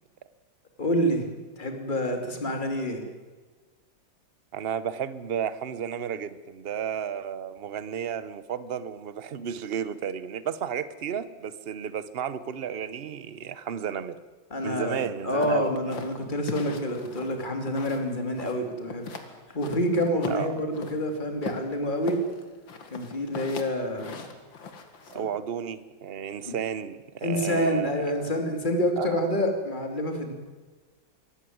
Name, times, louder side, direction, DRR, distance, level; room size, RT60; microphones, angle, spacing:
voice 1, 0.8-1.3 1.6-3.1 14.5-22.2 22.9-24.2 25.1-25.3 26.4-26.5 27.2-30.3, equal, 25° left, 2.9 m, -28 dB
voice 2, 4.5-14.2 14.6-16.0 20.3-20.5 25.1-27.9 28.2-28.3 29.0-29.2, right 8 dB, 50° right, 0.7 m, -33 dB
sound 1, 15.4-18.1 18.4-19.3 19.6-21.0 21.4-25.2, left 5 dB, 70° left, 2.7 m, -39 dB
25.0 x 14.5 x 9.4 m
omnidirectional pair, 2.2 m